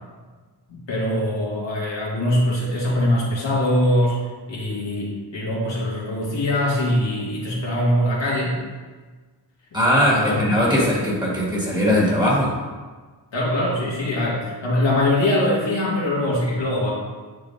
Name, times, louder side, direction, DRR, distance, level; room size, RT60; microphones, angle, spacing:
voice 1, 0.7-4.2 4.5-8.6 10.3-10.4 13.3-16.9, left 1 dB, 90° left, -5 dB, 2.0 m, -22 dB
voice 2, 9.7-12.5, equal, 10° right, -5 dB, 2.2 m, -19 dB
9.8 x 5.3 x 2.7 m, 1.4 s
wide cardioid pair, 100°, 43 cm